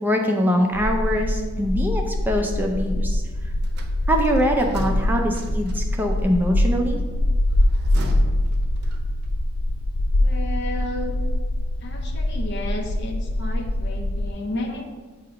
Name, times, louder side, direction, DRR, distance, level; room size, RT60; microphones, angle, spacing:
voice 1, 0.0-3.5 4.1-7.0, equal, 10° right, 1 dB, 0.4 m, -23 dB
sound 1, 0.7-14.3, left 1 dB, 80° left, 0.4 m, -24 dB
sound 2, 3.6-6.2 7.5-9.3, right 1 dB, 50° right, 0.7 m, -38 dB
voice 2, 10.2-11.2 11.8-14.8, left 1 dB, 55° left, 2 dB, 0.8 m, -32 dB
7.7 x 2.8 x 5.1 m, 1.4 s
head